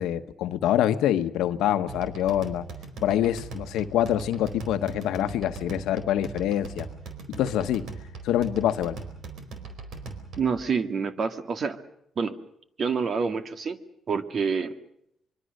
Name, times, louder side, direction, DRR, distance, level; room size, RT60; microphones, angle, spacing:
voice 1, 0.0-2.6 3.0-6.9 7.4-7.9 8.2-9.0, left 11 dB, 90° left, 1.1 m, -25 dB
sound 1, 1.9-10.6, right 3 dB, 70° right, 4.4 m, -40 dB
voice 2, 10.4-11.8 12.2-12.4 12.8-13.8 14.1-14.8, right 5 dB, 50° right, 1.9 m, -27 dB
24.5 x 23.0 x 6.6 m
cardioid pair, 90°, 0 cm